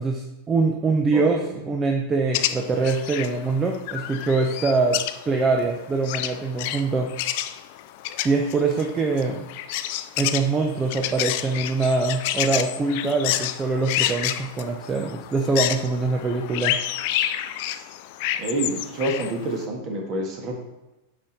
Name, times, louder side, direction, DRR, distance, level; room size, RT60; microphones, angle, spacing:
voice 1, 0.0-1.4 1.7-5.0 5.3-7.1 8.2-9.4 10.2-16.8, right 3 dB, 20° right, 2 dB, 0.7 m, -23 dB
voice 2, 1.1-1.6 18.4-20.6, right 1 dB, 35° right, 1 dB, 1.8 m, -28 dB
sound 1, 2.3-19.6, left 13 dB, 50° left, 0.4 m, -29 dB
8.5 x 5.5 x 4.3 m, 1.0 s
figure-of-eight pair, 90°, 0 cm